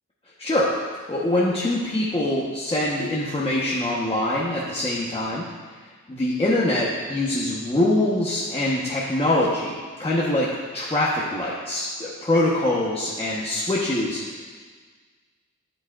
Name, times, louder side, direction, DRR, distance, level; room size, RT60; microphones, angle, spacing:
voice 1, 0.4-0.7 1.1-5.5 6.1-10.5 10.7-14.5, left 1 dB, 20° left, -7 dB, 1.2 m, -24 dB
10.0 x 8.4 x 2.5 m, 1.5 s
wide cardioid pair, 80°, 30 cm